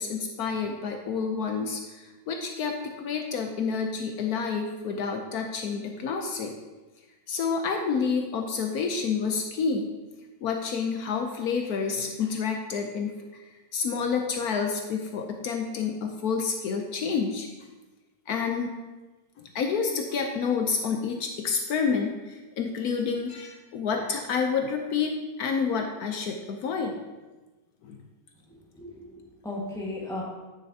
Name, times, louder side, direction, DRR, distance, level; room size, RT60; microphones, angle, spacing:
voice 1, 0.0-6.5 7.3-9.9 10.4-13.4 13.7-17.5 18.3-18.8 19.4-27.0 27.8-28.0, left 5 dB, 70° left, 3 dB, 1.1 m, -29 dB
voice 2, 28.7-30.2, left 2 dB, ahead, -4 dB, 1.4 m, -36 dB
9.8 x 6.5 x 2.8 m, 1.2 s
omnidirectional pair, 1.7 m